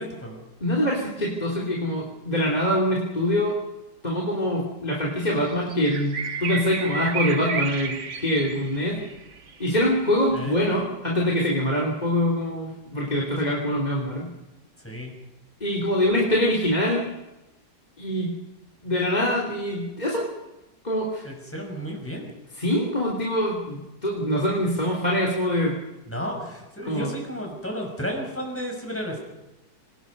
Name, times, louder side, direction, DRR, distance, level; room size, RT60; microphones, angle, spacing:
voice 1, 0.0-0.5 10.3-10.6 14.8-15.1 21.2-22.3 26.1-29.2, equal, 5° left, 1 dB, 5.8 m, -33 dB
voice 2, 0.6-3.5 4.0-9.0 9.6-14.3 15.6-17.1 18.0-18.4 18.8-20.3 20.8-21.3 22.6-25.8 26.8-27.1, equal, 25° left, -2 dB, 3.4 m, -24 dB
sound 1, 5.3-10.0 10.8-10.9, right 4 dB, 50° right, 1.6 m, -32 dB
27.5 x 19.5 x 5.4 m, 1.0 s
omnidirectional pair, 1.8 m